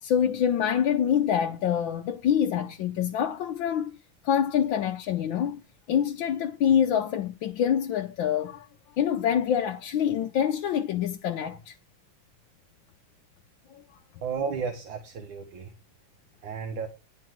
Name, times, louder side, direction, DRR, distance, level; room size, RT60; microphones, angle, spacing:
voice 1, 0.0-3.9 4.2-5.6 5.9-8.7 9.0-11.7, left 9 dB, 75° left, 1.5 m, -25 dB
voice 2, 14.2-15.7 16.4-16.9, right 5 dB, 75° right, 2.0 m, -33 dB
10.5 x 4.6 x 7.8 m
omnidirectional pair, 2.1 m